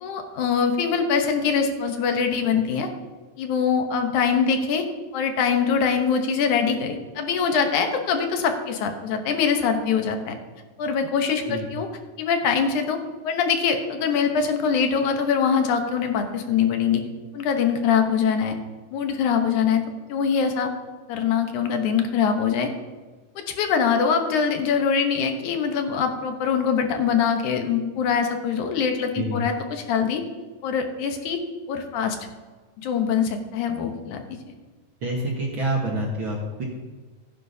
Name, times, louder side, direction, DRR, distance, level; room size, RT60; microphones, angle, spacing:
voice 1, 0.0-2.9 3.4-4.9 5.1-10.3 10.8-11.9 12.2-13.0 13.2-17.0 17.3-18.6 18.9-19.8 20.1-20.7 21.1-22.7 23.4-30.2 30.6-31.4 31.7-32.2 32.8-34.2, left 6 dB, 75° left, 5 dB, 2.4 m, -23 dB
voice 2, 29.1-29.4 35.0-36.6, right 1 dB, 50° right, -1 dB, 1.6 m, -27 dB
15.5 x 10.0 x 2.7 m, 1.3 s
omnidirectional pair, 3.7 m